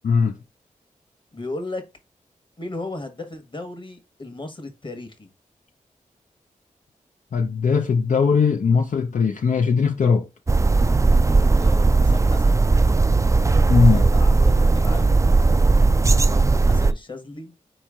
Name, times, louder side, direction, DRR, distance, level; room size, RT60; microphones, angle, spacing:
voice 1, 1.3-1.8 2.6-5.3 11.2-12.6 13.9-15.2 16.3-17.5, left 2 dB, 35° left, 1.3 m, -35 dB
voice 2, 7.3-10.3 13.7-14.1, left 5 dB, 65° left, 0.5 m, -19 dB
sound 1, 10.5-16.9, right 3 dB, 20° right, 0.3 m, -17 dB
4.4 x 3.1 x 3.6 m
cardioid pair, 55°, 14 cm